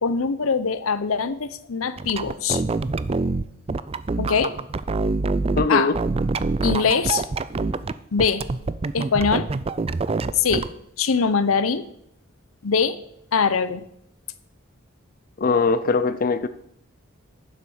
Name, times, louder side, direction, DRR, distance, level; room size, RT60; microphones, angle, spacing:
voice 1, 0.0-2.6 4.2-4.5 5.7-5.9 6.6-7.3 8.1-8.4 8.9-9.5 10.4-10.7 11.0-11.9 12.6-13.0 13.3-13.8, left 5 dB, 90° left, 14 dB, 0.7 m, -22 dB
sound 1, 2.0-5.7 5.9-7.9 8.2-10.7, right 3 dB, 30° right, 0.4 m, -25 dB
voice 2, 5.6-5.9 15.4-16.5, left 4 dB, 45° left, 12 dB, 0.5 m, -20 dB
11.0 x 7.2 x 6.3 m, 0.73 s
head